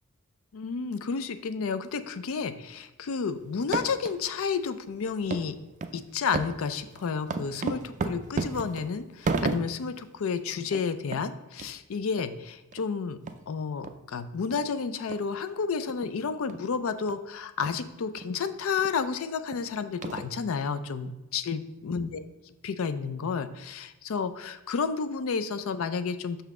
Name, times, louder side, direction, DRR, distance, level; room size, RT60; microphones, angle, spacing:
voice 1, 0.5-5.6 5.9-13.2 13.5-26.4, left 5 dB, 65° left, 12 dB, 0.4 m, -31 dB
sound 1, 3.5-4.2 4.6-4.7 5.3-5.5 5.8-6.0 6.3-9.9 10.3-10.4 10.6-10.9 11.1-11.2 11.6-11.7 12.2-12.3 12.7-12.8 13.3-13.4 13.8-13.9 14.5-14.6 15.1-15.2 15.9-16.1 16.5-16.7 17.1-17.2 17.6-17.8 18.2-18.3 18.8-18.9 19.5-19.6 20.0-20.6, right 3 dB, 35° right, 0.4 m, -33 dB
5.7 x 5.6 x 3.6 m, 1.0 s
head